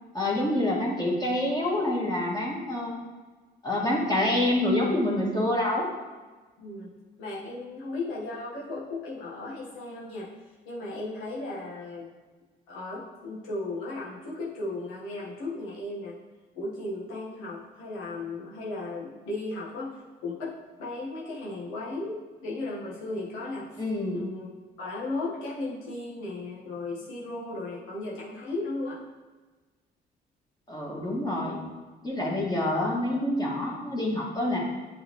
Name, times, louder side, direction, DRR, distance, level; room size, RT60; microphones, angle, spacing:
voice 1, 0.1-2.9 3.6-5.9 23.8-24.2 30.7-31.6 32.0-34.6, left 1 dB, 20° left, -4 dB, 1.9 m, -27 dB
voice 2, 6.6-10.3 10.6-12.1 12.7-16.2 16.5-23.8 24.1-24.5 24.8-29.0, left 2 dB, 90° left, -5 dB, 1.5 m, -36 dB
7.8 x 4.1 x 3.1 m, 1.3 s
supercardioid pair, 60°, 20 cm